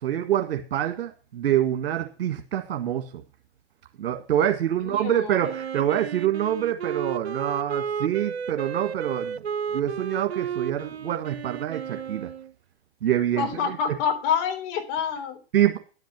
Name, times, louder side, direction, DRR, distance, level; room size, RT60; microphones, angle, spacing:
voice 1, 0.0-3.2 4.0-9.4 9.7-12.3 13.0-13.6 15.5-15.8, right 11 dB, 60° right, 6 dB, 1.6 m, -26 dB
voice 2, 4.8-5.5 13.4-15.4, left 7 dB, 45° left, 5 dB, 3.7 m, -27 dB
Wind instrument woodwind instrument, 5.4-12.5, right 7 dB, 80° right, 0.6 m, -33 dB
11.0 x 9.3 x 5.9 m, 0.36 s
figure-of-eight pair, 100°, 32 cm